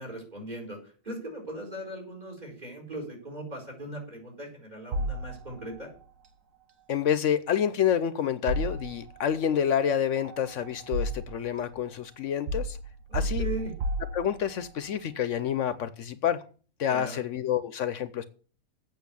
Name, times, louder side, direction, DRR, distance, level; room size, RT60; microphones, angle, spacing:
voice 1, 0.0-5.9 13.1-13.7 16.9-17.2, right 1 dB, 35° right, 4.7 m, -39 dB
sound 1, 4.9-5.8 8.5-9.3 10.2-11.6 12.5-14.7, right 1 dB, 75° right, 1.5 m, -32 dB
voice 2, 6.9-12.8 13.1-13.5 14.1-16.4 16.8-18.2, left 9 dB, 70° left, 1.0 m, -28 dB
8.4 x 6.6 x 8.3 m
omnidirectional pair, 1.4 m